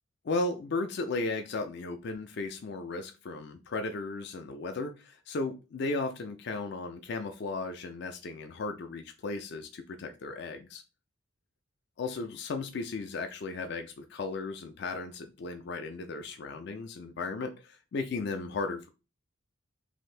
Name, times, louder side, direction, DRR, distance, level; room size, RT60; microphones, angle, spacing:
voice 1, 0.2-10.8 12.0-18.9, left 3 dB, 55° left, 6 dB, 0.4 m, -35 dB
2.7 x 2.5 x 3.2 m, 0.29 s
head